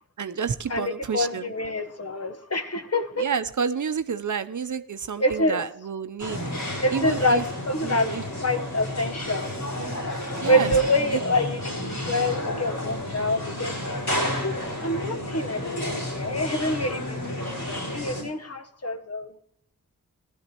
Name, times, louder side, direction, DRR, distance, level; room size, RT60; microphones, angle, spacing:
voice 1, 0.2-1.4 3.2-6.4 6.9-7.4 7.8-8.2 10.3-10.7, right 6 dB, 60° right, 11 dB, 0.7 m, -29 dB
voice 2, 0.7-3.3 5.2-5.6 6.8-9.6 10.4-17.4 17.7-19.4, left 1 dB, 45° left, 8 dB, 1.2 m, -26 dB
sound 1, 6.2-18.2, left 1 dB, 65° left, 6.0 m, -31 dB
15.0 x 12.0 x 3.0 m, 0.71 s
cardioid pair, 45°, 34 cm